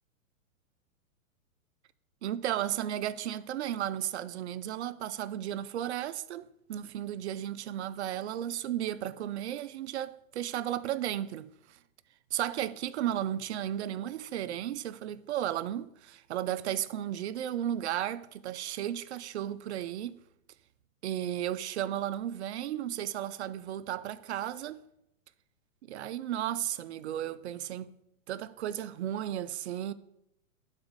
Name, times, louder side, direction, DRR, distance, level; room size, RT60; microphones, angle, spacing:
voice 1, 2.2-11.8 12.3-20.2 21.0-24.8 25.8-28.0 28.3-29.9, right 11 dB, 55° right, 0.5 m, -34 dB
11.5 x 4.1 x 5.0 m
hypercardioid pair, 150°, 42 cm